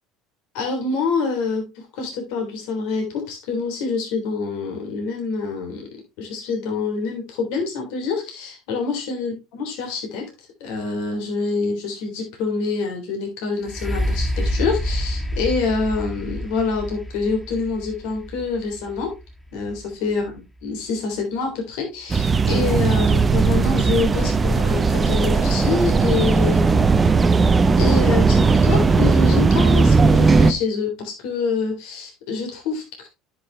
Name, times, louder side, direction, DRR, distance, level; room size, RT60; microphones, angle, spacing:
voice 1, 0.5-1.7 2.0-5.9 6.2-10.3 10.6-19.1 19.5-26.8 27.6-33.1, left 4 dB, 70° left, 2 dB, 3.2 m, -26 dB
sound 1, 13.6-21.4 22.0-22.1, equal, 5° left, 2.1 m, -28 dB
sound 2, 22.1-30.5, right 4 dB, 25° right, 0.8 m, -17 dB
9.7 x 6.1 x 3.2 m, 0.25 s
hypercardioid pair, 80°, 0 cm